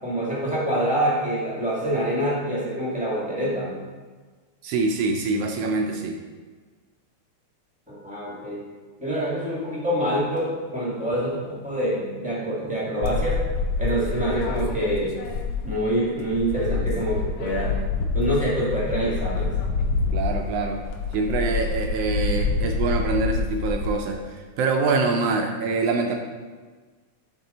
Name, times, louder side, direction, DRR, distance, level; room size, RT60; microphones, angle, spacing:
voice 1, 0.0-3.7 7.9-8.7 9.0-13.4 13.8-15.1 15.6-17.8 18.1-19.5, right 1 dB, 10° right, -6 dB, 0.4 m, -26 dB
voice 2, 4.6-6.2 20.1-20.8 21.1-26.2, right 4 dB, 80° right, 3 dB, 1.4 m, -25 dB
sound 1, 13.0-15.9 16.2-23.9, left 4 dB, 75° left, 1.2 m, -27 dB
10.5 x 3.7 x 4.0 m, 1.4 s
omnidirectional pair, 3.3 m